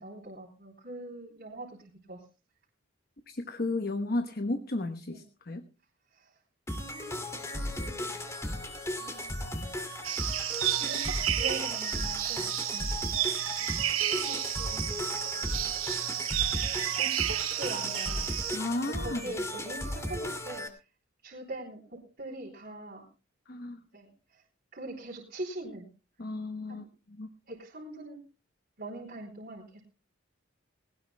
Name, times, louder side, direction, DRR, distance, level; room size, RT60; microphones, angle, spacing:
voice 1, 0.0-1.8 2.1-2.2 5.1-5.2 6.2-6.3 6.8-8.1 9.0-9.6 10.7-12.5 13.6-14.9 15.3-15.8 17.0-18.2 18.8-20.7 21.2-23.1 23.9-24.1 24.7-25.9 26.7-26.9 27.5-28.2 28.8-29.8, right 2 dB, 50° right, -4 dB, 3.5 m, -42 dB
voice 2, 3.3-5.6 12.7-12.9 18.5-19.3 23.5-23.8 26.2-27.3, left 2 dB, 50° left, 8 dB, 1.0 m, -34 dB
sound 1, 6.7-20.7, left 1 dB, 15° left, 2.4 m, -36 dB
sound 2, 10.0-18.6, right 13 dB, 90° right, 0.8 m, -31 dB
20.0 x 18.5 x 2.3 m, 0.32 s
head